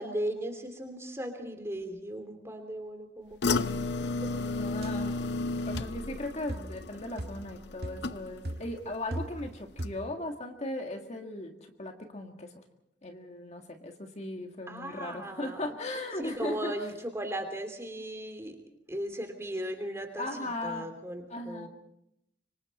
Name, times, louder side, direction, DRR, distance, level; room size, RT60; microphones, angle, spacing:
voice 1, 0.0-4.3 14.7-15.6 16.2-18.6 18.9-21.7, right 1 dB, 15° right, 5 dB, 2.9 m, -37 dB
sound 1, 3.4-8.6 8.9-9.4 9.8-9.9, left 3 dB, 70° left, 0.7 m, -33 dB
voice 2, 4.6-5.3 5.6-12.5 13.0-16.7 20.2-20.9 21.3-21.7, left 1 dB, 40° left, 4 dB, 1.9 m, -37 dB
sound 2, 4.8-5.0 5.7-6.0 6.5-6.8 7.2-7.5 7.8-8.1 8.4-9.5 9.8-10.2, right 1 dB, 60° right, 1.8 m, -38 dB
25.5 x 25.0 x 4.3 m, 0.80 s
head